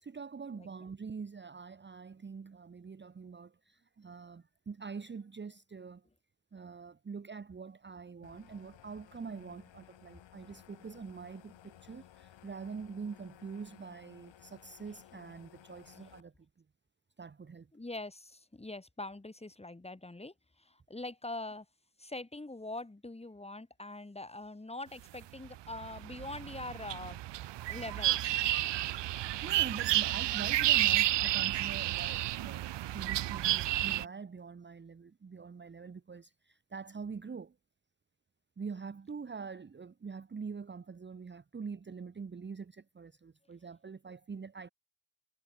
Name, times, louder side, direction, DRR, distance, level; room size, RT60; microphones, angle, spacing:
voice 1, 0.0-6.1 6.5-16.3 17.2-17.7 29.4-37.5 38.6-44.7, right 5 dB, 25° right, 1.0 m, -45 dB
sound 1, 8.2-16.2, left 11 dB, 80° left, 5.7 m, -58 dB
voice 2, 17.7-21.7 22.0-27.2 27.7-28.5, left 2 dB, 15° left, 2.9 m, -43 dB
sound 2, 25.2-34.1, right 14 dB, 70° right, 0.8 m, -31 dB
cardioid pair, 85°, 44 cm